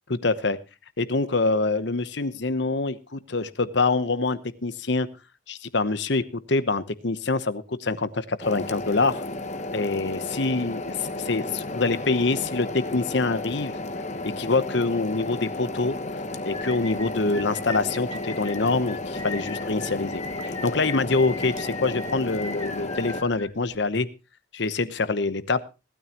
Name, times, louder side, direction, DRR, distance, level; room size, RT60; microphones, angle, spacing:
voice 1, 0.1-0.6 1.0-5.1 5.5-9.2 9.7-13.8 14.2-16.0 16.5-24.1 24.5-25.6, left 3 dB, 60° left, 14 dB, 0.9 m, -25 dB
sound 1, 8.4-23.2, left 2 dB, 35° left, 1.0 m, -33 dB
sound 2, 16.5-23.9, left 3 dB, 20° left, 1.9 m, -40 dB
18.5 x 12.5 x 3.0 m, 0.29 s
head